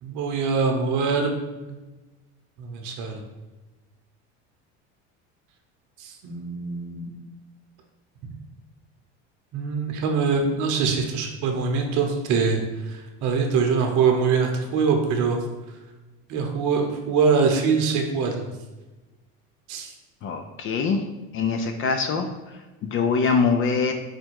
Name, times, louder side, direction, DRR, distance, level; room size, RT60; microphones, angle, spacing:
voice 1, 0.0-1.3 2.6-3.2 6.0-7.1 9.5-12.6 12.9-15.4 16.3-18.5 19.7-19.9, right 5 dB, 65° right, 3 dB, 0.8 m, -23 dB
voice 2, 20.2-21.1 21.3-23.9, left 5 dB, 40° left, 6 dB, 0.5 m, -24 dB
5.0 x 2.2 x 4.5 m, 1.2 s
supercardioid pair, 115°, 33 cm